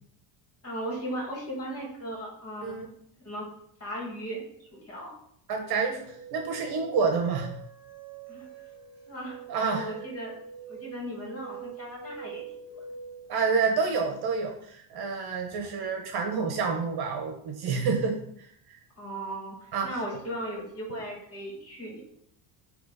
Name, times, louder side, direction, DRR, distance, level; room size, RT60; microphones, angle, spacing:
voice 1, 0.6-2.8 3.2-3.4 3.8-4.4 4.7-5.1 8.3-8.5 9.1-9.4 9.6-10.3 10.7-12.4 12.7-12.8 19.0-19.6 19.8-22.0, right 1 dB, 30° left, -2 dB, 2.5 m, -37 dB
voice 2, 5.5-7.5 9.5-9.9 13.3-18.8 19.7-20.0, right 5 dB, 50° right, 3 dB, 1.2 m, -28 dB
sound 1, 6.1-13.3, right 6 dB, 10° right, 2.3 m, -44 dB
8.6 x 3.2 x 4.1 m, 0.69 s
cardioid pair, 140°, 50 cm